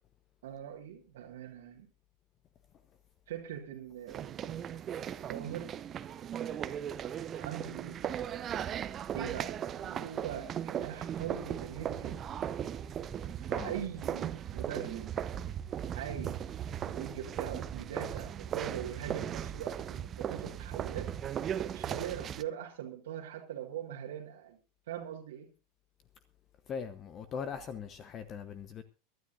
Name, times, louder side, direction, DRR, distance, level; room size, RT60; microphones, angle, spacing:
voice 1, 0.4-1.9 3.3-4.8 5.3-5.7 7.3-8.1 9.1-12.2 13.4-15.1 15.9-16.3 16.8-21.1 21.7-24.6 24.9-25.5, right 10 dB, 60° right, 1.9 m, -42 dB
sound 1, 4.1-22.4, right 9 dB, 30° right, 0.8 m, -37 dB
voice 2, 26.7-28.8, left 6 dB, 35° left, 1.0 m, -41 dB
23.5 x 12.5 x 2.6 m
figure-of-eight pair, 80°, 0 cm